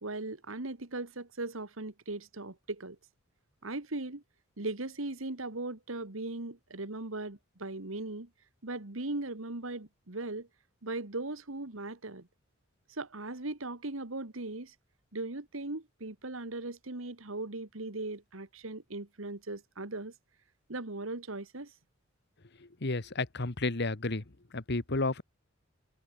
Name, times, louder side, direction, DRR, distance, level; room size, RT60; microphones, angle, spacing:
voice 1, 0.0-3.0 3.6-4.2 4.6-8.3 8.6-10.5 10.8-12.3 12.9-14.7 15.1-20.1 20.7-21.7, right 2 dB, 70° right, 2.0 m, -38 dB
voice 2, 22.6-24.2 24.5-25.2, left 3 dB, 55° left, 1.5 m, -32 dB
head